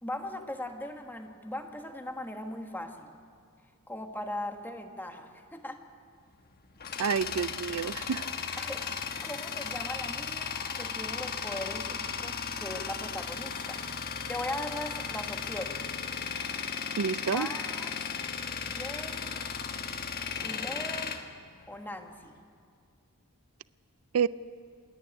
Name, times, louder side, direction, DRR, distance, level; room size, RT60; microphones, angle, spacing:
voice 1, 0.0-3.1 3.9-5.8 8.6-8.9 9.2-15.8 17.3-17.9 18.6-19.4 20.4-21.2 21.7-22.3, left 1 dB, 10° left, 5 dB, 1.3 m, -39 dB
Tools, 6.3-22.2, left 6 dB, 45° left, 1.2 m, -36 dB
voice 2, 7.0-8.3 17.0-17.5 24.1-24.3, right 7 dB, 70° right, 17 dB, 0.4 m, -28 dB
27.0 x 10.5 x 9.9 m, 2.1 s
head